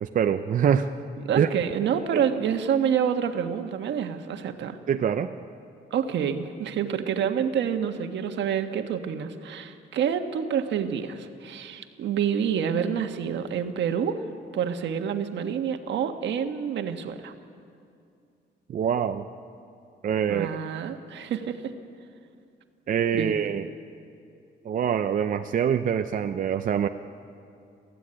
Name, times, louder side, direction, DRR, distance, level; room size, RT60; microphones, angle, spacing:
voice 1, 0.0-0.9 1.4-1.5 2.1-2.2 4.9-5.3 18.7-19.2 20.0-20.6 22.9-23.7 24.6-26.9, right 8 dB, 45° right, 8 dB, 0.6 m, -24 dB
voice 2, 1.2-4.8 5.9-14.2 14.5-17.3 20.3-21.7 23.1-23.5, right 8 dB, 80° right, 6 dB, 1.4 m, -28 dB
21.0 x 15.0 x 9.9 m, 2.4 s
cardioid pair, 150°, 18 cm